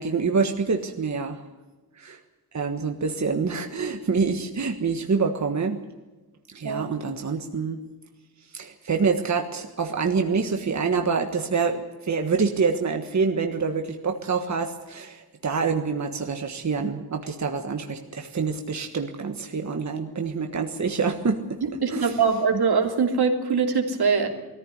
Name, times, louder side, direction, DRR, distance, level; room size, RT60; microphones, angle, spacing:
voice 1, 0.0-1.4 2.0-2.2 2.5-5.8 6.5-7.8 8.5-21.6 21.9-22.3, right 5 dB, 45° right, 5 dB, 1.4 m, -26 dB
voice 2, 21.6-24.3, right 5 dB, 85° right, 2 dB, 3.2 m, -23 dB
20.0 x 14.5 x 9.8 m, 1.2 s
wide cardioid pair, 125°, 37 cm